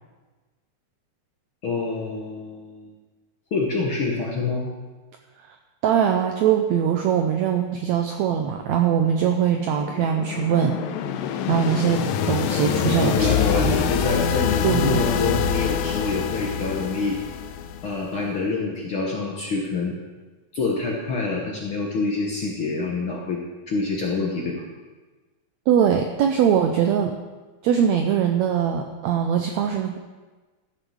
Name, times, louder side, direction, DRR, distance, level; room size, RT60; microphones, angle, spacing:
voice 1, 1.6-2.9 3.5-4.7 12.8-17.2 17.8-20.0 20.5-23.4 23.7-24.6, left 3 dB, 60° left, -2 dB, 1.4 m, -26 dB
voice 2, 5.8-10.8 11.5-13.3 13.6-13.8 14.6-15.0 25.7-27.1 27.6-30.0, right 8 dB, 80° right, 4 dB, 1.6 m, -21 dB
sound 1, 9.3-18.2, left 7 dB, 90° left, 2.5 m, -25 dB
13.5 x 6.8 x 6.3 m, 1.3 s
omnidirectional pair, 4.0 m